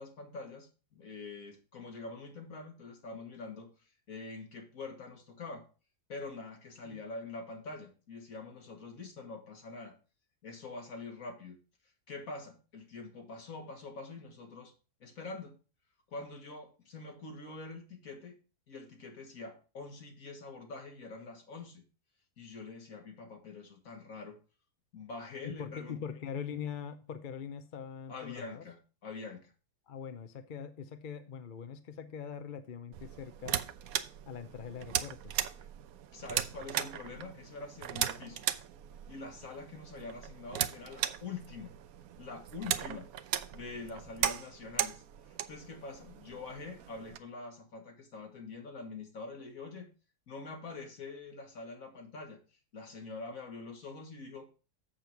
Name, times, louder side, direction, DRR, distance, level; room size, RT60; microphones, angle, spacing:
voice 1, 0.0-3.7 4.1-5.7 6.1-9.9 10.4-11.6 12.1-14.7 15.0-15.6 16.1-18.4 18.7-21.8 22.4-24.4 24.9-26.0 28.1-29.5 36.1-38.4 39.1-41.8 42.2-43.1 43.5-49.9 50.3-52.4 52.7-54.5, left 3 dB, 60° left, 2.1 m, -45 dB
voice 2, 25.4-28.6 29.9-33.6 34.2-35.3, left 7 dB, 45° left, 0.7 m, -42 dB
sound 1, 32.9-47.2, right 10 dB, 70° right, 1.0 m, -38 dB
7.6 x 6.9 x 4.5 m
omnidirectional pair, 1.6 m